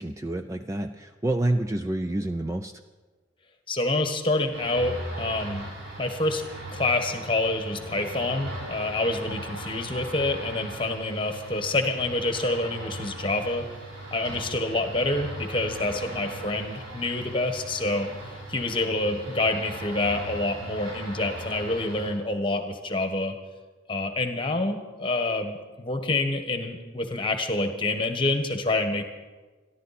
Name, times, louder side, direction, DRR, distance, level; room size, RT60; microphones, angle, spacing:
voice 1, 0.0-2.7, right 1 dB, 15° right, 7 dB, 0.4 m, -28 dB
voice 2, 3.7-5.7 6.0-6.4 6.7-13.7 14.1-18.1 18.5-23.3 23.9-29.0, left 2 dB, 25° left, 6 dB, 1.3 m, -27 dB
sound 1, 4.5-22.1, right 1 dB, 75° right, 4.9 m, -39 dB
26.5 x 11.5 x 4.2 m, 1.3 s
head